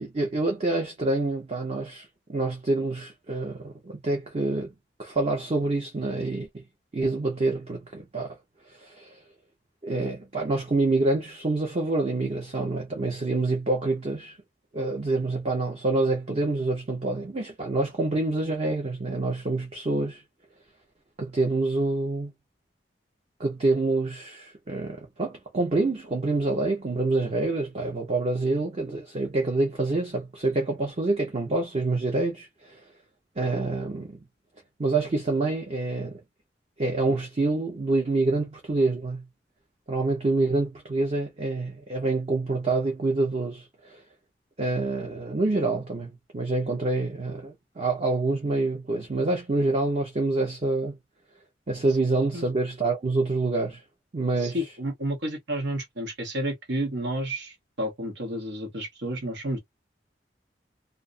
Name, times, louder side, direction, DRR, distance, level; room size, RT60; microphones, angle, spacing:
voice 1, 0.0-4.7 5.0-6.6 6.9-8.4 8.7-9.2 9.8-14.4 14.7-20.2 21.2-22.3 23.4-32.8 33.4-34.2 34.8-36.2 36.8-39.2 39.9-44.0 44.6-51.0 51.7-53.8 54.1-54.6, right 2 dB, 35° right, 0.7 m, -27 dB
voice 2, 54.4-59.6, right 1 dB, 75° right, 0.9 m, -31 dB
2.4 x 2.0 x 2.5 m
head